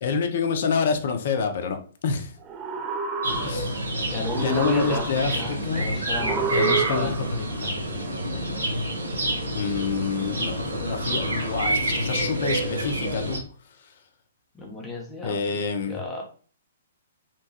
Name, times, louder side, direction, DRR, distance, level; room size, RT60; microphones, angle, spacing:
voice 1, 0.0-2.3 3.4-3.8 4.4-5.9 6.4-7.8 9.5-13.4 13.8-13.9 15.2-16.0, left 5 dB, 50° left, 5 dB, 0.5 m, -27 dB
sound 1, 2.4-3.9 4.2-5.5 6.2-7.5, right 5 dB, 25° right, 0.3 m, -29 dB
sound 2, 3.2-13.4, right 1 dB, 70° right, 0.8 m, -28 dB
voice 2, 4.1-7.2 14.5-16.2, left 3 dB, 15° left, -2 dB, 0.6 m, -33 dB
2.9 x 2.2 x 2.8 m, 0.41 s
figure-of-eight pair, 120°, 0 cm